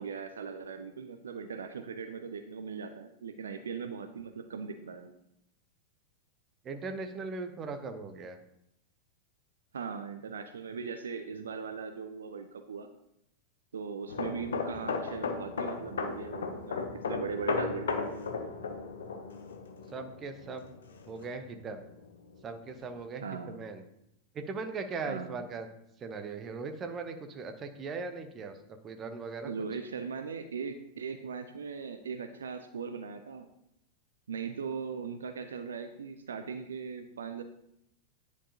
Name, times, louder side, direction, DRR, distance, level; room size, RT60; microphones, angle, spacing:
voice 1, 0.0-5.2 9.7-12.9 13.7-18.1 23.2-23.6 25.1-25.5 29.4-33.5 34.3-37.4, right 6 dB, 70° right, 8 dB, 0.5 m, -39 dB
voice 2, 6.6-8.4 19.9-20.7 21.1-21.8 22.4-23.8 24.3-25.7 26.0-28.6 28.8-29.5, right 4 dB, 25° right, 7 dB, 0.8 m, -39 dB
sound 1, 14.1-21.6 21.9-22.1, left 4 dB, 65° left, 0.8 m, -35 dB
9.9 x 4.6 x 2.8 m, 0.79 s
figure-of-eight pair, 90°, 0 cm